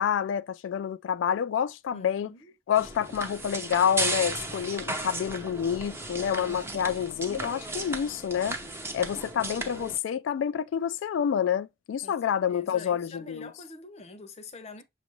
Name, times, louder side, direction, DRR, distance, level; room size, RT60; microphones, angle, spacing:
voice 1, 0.0-2.3 2.7-8.6 8.9-13.5, left 8 dB, 75° left, 0.3 m, -28 dB
voice 2, 1.9-2.5 12.0-12.1 12.5-14.8, left 3 dB, 35° left, 0.7 m, -46 dB
sound 1, 2.8-10.0, right 2 dB, 15° right, 0.6 m, -35 dB
6.1 x 2.5 x 2.9 m
head